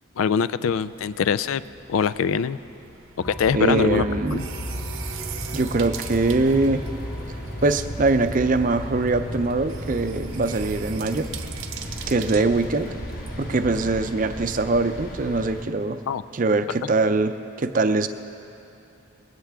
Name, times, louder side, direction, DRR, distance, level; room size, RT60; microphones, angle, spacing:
voice 1, 0.2-1.6 1.9-2.6 3.2-4.0 4.3-4.4 12.3-12.4 16.1-16.2, left 6 dB, 85° left, 16 dB, 0.4 m, -23 dB
sound 1, 0.7-14.2, right 8 dB, 85° right, 0.9 m, -42 dB
sound 2, 3.2-13.8, equal, 70° left, 3.7 m, -35 dB
voice 2, 3.5-4.4 5.5-6.8 7.6-11.3 12.1-12.9 13.4-16.0 16.3-18.1, right 3 dB, 40° right, 9 dB, 0.5 m, -22 dB
sound 3, 6.2-15.6, equal, 45° left, 1.5 m, -39 dB
20.5 x 16.5 x 3.5 m, 2.7 s
head